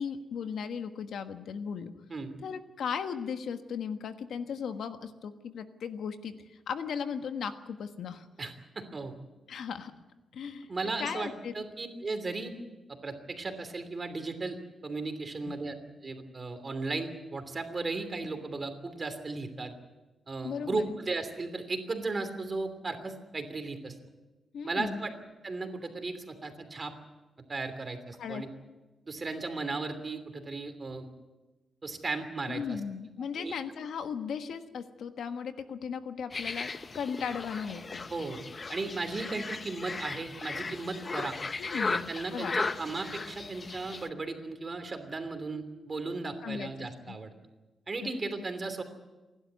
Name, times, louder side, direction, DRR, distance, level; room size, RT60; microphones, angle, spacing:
voice 1, 0.0-1.9 2.4-6.3 6.7-8.2 9.5-9.9 10.3-10.7 11.0-11.5 15.4-15.6 20.4-20.9 24.5-25.0 28.2-28.4 32.5-38.1 41.6-42.6 46.4-47.2 48.0-48.1, left 6 dB, 80° left, 8 dB, 1.4 m, -37 dB
voice 2, 8.4-9.1 10.7-12.5 12.9-14.6 14.8-15.7 16.0-19.7 20.3-23.9 24.6-25.1 25.4-26.9 27.5-28.5 29.1-31.1 31.8-32.8 33.3-33.5 38.1-38.4 38.7-41.4 41.9-47.3 47.9-48.8, right 3 dB, 35° right, 8 dB, 2.9 m, -36 dB
sound 1, 36.3-44.1, left 4 dB, 35° left, 0.8 m, -36 dB
28.0 x 12.0 x 9.4 m, 1.1 s
cardioid pair, 115°, 0 cm